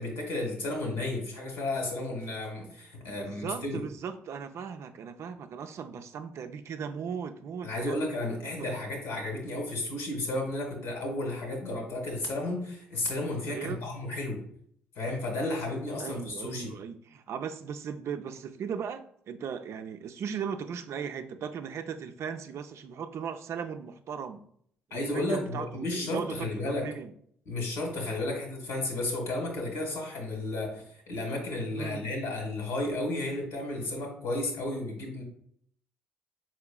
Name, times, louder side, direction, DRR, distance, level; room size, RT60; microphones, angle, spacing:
voice 1, 0.0-3.8 7.6-14.4 15.0-16.7 24.9-26.9 27.5-35.2, left 2 dB, 75° left, 1 dB, 1.6 m, -33 dB
voice 2, 3.0-8.0 13.5-13.8 16.0-24.4 24.9-27.1 31.7-32.1, right 7 dB, 60° right, 8 dB, 0.4 m, -37 dB
4.6 x 4.3 x 2.2 m, 0.65 s
hypercardioid pair, 50°, 5 cm